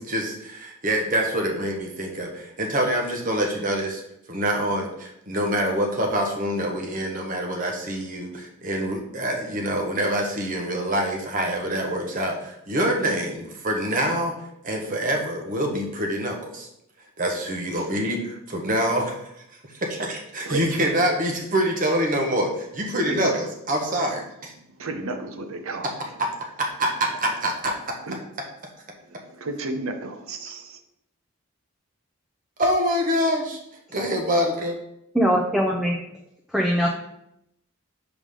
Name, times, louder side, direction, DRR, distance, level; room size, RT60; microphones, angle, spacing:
voice 1, 0.0-4.0 4.3-14.3 14.6-16.7 17.2-19.2 19.8-24.5 26.2-26.3 26.6-27.7 32.6-33.6 33.9-34.8, equal, 40° right, 1 dB, 1.0 m, -25 dB
voice 2, 20.4-20.8 21.1-21.2 23.1-23.4 23.9-24.1 24.6-26.1 27.1-27.3 27.7-27.8 28.1-28.3 29.0-30.8, right 2 dB, 80° right, 6 dB, 0.7 m, -33 dB
voice 3, 35.1-36.0 36.5-36.9, equal, ahead, -2 dB, 0.5 m, -21 dB
4.9 x 3.5 x 5.3 m, 0.80 s
head